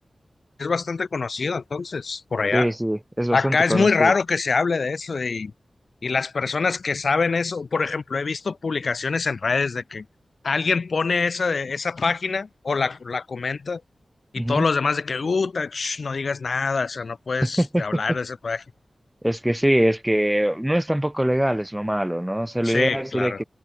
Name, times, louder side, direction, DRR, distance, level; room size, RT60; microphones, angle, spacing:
voice 1, 0.6-2.7 3.3-5.5 6.0-10.0 10.4-13.8 14.3-18.6 22.6-23.4, left 4 dB, 65° left, 0.8 m, -24 dB
voice 2, 2.5-4.1 14.4-14.7 17.4-18.0 19.2-23.4, right 1 dB, 10° right, 0.6 m, -23 dB
wide cardioid pair, 95°, 0 cm